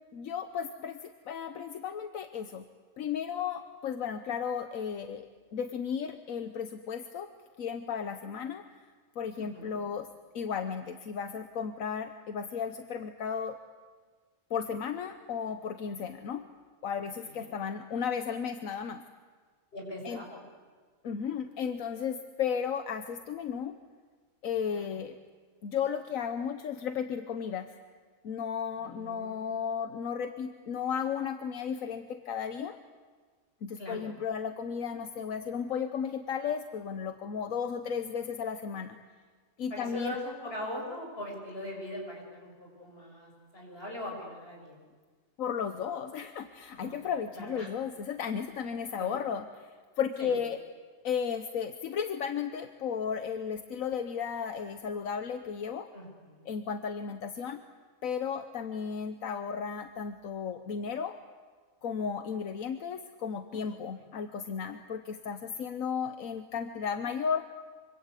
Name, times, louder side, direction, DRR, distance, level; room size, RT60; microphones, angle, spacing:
voice 1, 0.1-2.7 3.0-5.3 5.5-7.3 7.6-8.6 9.2-10.1 10.3-13.6 14.5-16.4 16.8-19.0 20.0-20.2 21.0-23.8 24.4-25.1 25.6-27.7 28.2-32.8 33.6-39.0 39.6-40.2 45.4-50.6 51.0-55.9 56.4-57.6 58.0-61.2 61.8-67.4, left 7 dB, 80° left, 8 dB, 1.4 m, -34 dB
voice 2, 9.4-9.8 17.4-17.5 19.7-20.4 24.7-24.9 28.8-29.6 33.8-34.1 39.7-44.8 46.7-47.7 49.0-49.1 50.2-50.3 55.9-56.5 64.0-64.1, left 1 dB, 45° left, 0 dB, 6.9 m, -41 dB
25.5 x 24.5 x 8.3 m, 1.5 s
omnidirectional pair, 1.4 m